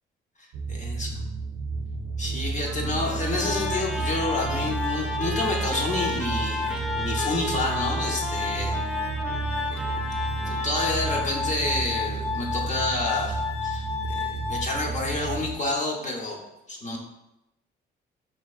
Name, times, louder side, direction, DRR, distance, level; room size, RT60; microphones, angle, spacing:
voice 1, 0.4-1.2 2.2-8.8 9.7-9.9 10.4-16.4 16.7-17.0, left 2 dB, 40° left, 0 dB, 0.8 m, -29 dB
sound 1, 0.5-15.6, right 4 dB, 85° right, 0.6 m, -32 dB
Trumpet, 2.7-11.6, right 1 dB, ahead, 0.5 m, -36 dB
Glass, 3.4-15.4, left 6 dB, 60° left, 0.4 m, -32 dB
5.2 x 2.8 x 2.3 m, 0.91 s
cardioid pair, 90°, 20 cm